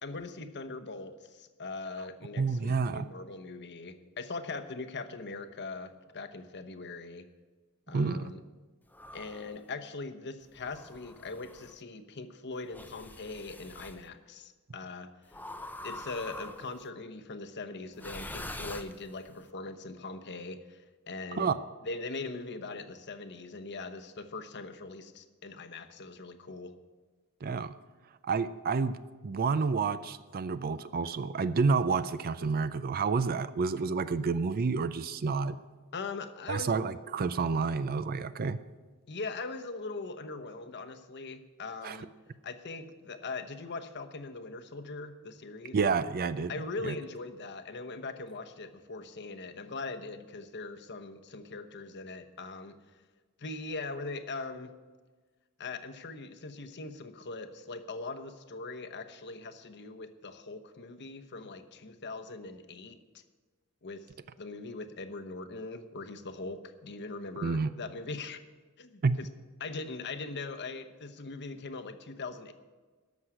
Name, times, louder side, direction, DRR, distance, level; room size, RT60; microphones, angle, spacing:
voice 1, 0.0-7.2 7.9-8.4 9.1-15.1 15.8-21.5 21.8-26.8 35.9-36.7 39.1-42.1 42.4-45.8 46.5-52.8 53.4-54.7 55.6-63.0 63.8-64.1 64.4-68.4 68.8-69.3 69.6-72.5, left 3 dB, 50° left, 8 dB, 1.0 m, -41 dB
voice 2, 2.4-3.1 7.9-8.3 21.4-21.6 27.4-27.7 28.2-29.0 29.2-35.6 36.5-38.6 41.8-42.0 45.7-46.5 46.8-46.9 67.4-67.7 69.0-69.2, right 4 dB, 45° right, 14 dB, 0.4 m, -29 dB
sound 1, 8.9-9.6 10.5-11.7 12.7-14.0 15.3-16.8 17.9-19.4, left 1 dB, 10° left, 0.6 m, -44 dB
13.5 x 6.3 x 9.8 m, 1.4 s
head